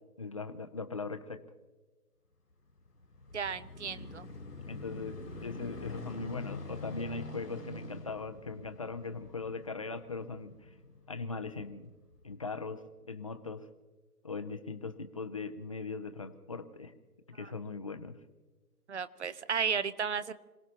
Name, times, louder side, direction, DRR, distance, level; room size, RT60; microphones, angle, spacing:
voice 1, 0.2-1.4 4.7-10.6 11.1-11.9 12.2-13.7 14.2-16.9 17.3-18.1, left 4 dB, 20° left, 9 dB, 0.6 m, -40 dB
sound 1, 2.7-11.5 12.1-12.2, left 2 dB, 80° left, 2.2 m, -45 dB
voice 2, 3.3-4.3 17.4-17.5 18.9-20.3, right 6 dB, 45° right, 15 dB, 0.8 m, -34 dB
27.0 x 17.5 x 2.9 m, 1.3 s
figure-of-eight pair, 140°, 47 cm